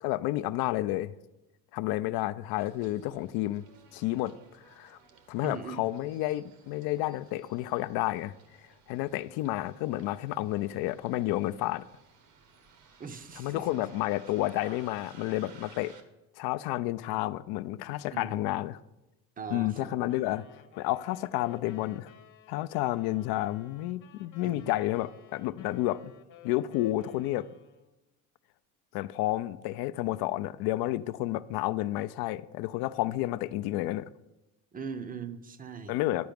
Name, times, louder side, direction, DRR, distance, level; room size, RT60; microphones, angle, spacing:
voice 1, 0.0-1.1 1.7-3.7 3.9-4.4 4.8-5.0 5.3-8.3 8.9-11.8 13.4-15.9 16.4-18.8 19.5-20.5 20.8-22.1 22.5-26.1 26.4-27.5 28.9-34.1 35.9-36.3, left 16 dB, 65° left, 0.5 m, -30 dB
Bus, 2.6-16.0, right 5 dB, 75° right, 1.3 m, -57 dB
voice 2, 5.4-5.8 13.0-13.7 18.1-18.5 19.4-20.0 24.4-24.8 34.7-36.0, right 5 dB, 20° right, 0.6 m, -40 dB
sound 1, 20.1-28.0, left 8 dB, 50° left, 1.2 m, -56 dB
10.5 x 4.7 x 5.2 m
supercardioid pair, 95°, 42 cm